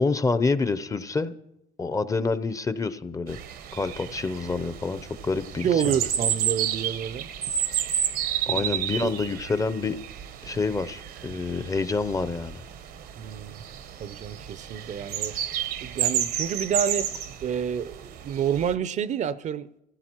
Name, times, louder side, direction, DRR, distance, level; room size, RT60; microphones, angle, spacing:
voice 1, 0.0-1.3 1.8-3.4 3.7-6.0 8.5-10.0 10.4-12.6, left 4 dB, 20° left, 0.6 m, -27 dB
sound 1, 3.3-18.7, right 9 dB, 80° right, 0.8 m, -31 dB
voice 2, 5.6-7.3 8.5-8.6 9.0-9.1 13.2-13.6 14.0-15.4 15.8-17.1 17.4-19.7, right 8 dB, 50° right, 0.5 m, -28 dB
25.0 x 15.5 x 3.0 m
cardioid pair, 115°, 16 cm